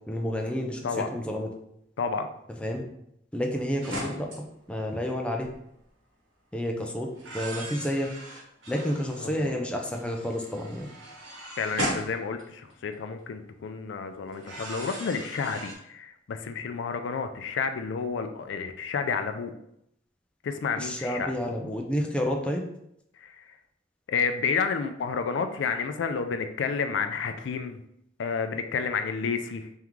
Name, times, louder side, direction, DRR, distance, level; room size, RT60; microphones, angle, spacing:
voice 1, 0.1-1.5 2.6-2.9 3.3-4.3 4.7-5.5 6.5-7.1 7.3-8.1 8.7-10.9 20.8-22.6, equal, 5° left, 1 dB, 0.4 m, -30 dB
sound 1, 3.8-4.4 5.3-5.5 7.1-9.5 9.9-12.9 14.3-15.7, right 1 dB, 85° right, 1.5 m, -37 dB
voice 2, 9.2-9.5 11.6-19.5 20.4-21.3 23.2-23.4 24.1-27.8 28.2-29.7, left 5 dB, 75° left, 8 dB, 0.4 m, -30 dB
3.6 x 3.5 x 3.0 m, 0.77 s
head